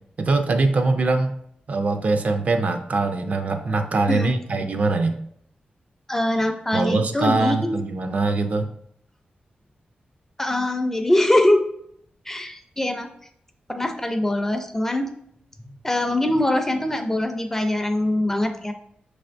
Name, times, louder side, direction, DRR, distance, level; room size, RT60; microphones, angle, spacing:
voice 1, 0.2-1.4 1.7-5.2 6.7-8.7, right 3 dB, 50° right, 6 dB, 0.4 m, -22 dB
voice 2, 6.1-7.7 10.4-11.6 12.3-13.1 13.7-15.1 15.8-18.7, left 1 dB, 15° left, 6 dB, 0.4 m, -22 dB
5.7 x 3.3 x 2.5 m, 0.70 s
wide cardioid pair, 105°, 3 cm